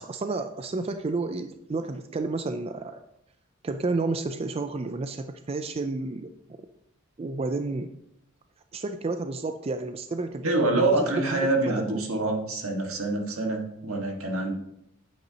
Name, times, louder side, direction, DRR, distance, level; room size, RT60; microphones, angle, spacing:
voice 1, 0.0-3.0 3.6-6.3 7.2-7.9 8.7-12.0, right 3 dB, 30° right, 8 dB, 0.4 m, -31 dB
voice 2, 10.4-14.5, right 2 dB, 80° right, 1 dB, 1.7 m, -26 dB
9.2 x 7.9 x 2.8 m, 0.79 s
head